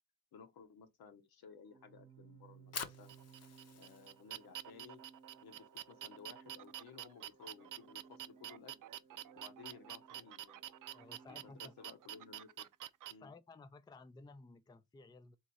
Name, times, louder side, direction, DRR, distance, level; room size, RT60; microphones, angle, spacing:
voice 1, 0.3-3.1 3.7-5.0 5.4-8.7 9.3-10.6 10.9-12.7 13.1-13.3, left 6 dB, 80° left, 1.0 m, -57 dB
Organ, 1.7-12.4, right 5 dB, 25° right, 0.9 m, -62 dB
Fire, 2.4-8.6, left 7 dB, 45° left, 0.7 m, -51 dB
sound 1, 3.1-13.1, right 12 dB, 60° right, 0.5 m, -48 dB
voice 2, 10.9-11.7 13.2-15.4, left 3 dB, 10° left, 0.4 m, -56 dB
3.7 x 3.0 x 4.1 m
cardioid pair, 80°, 36 cm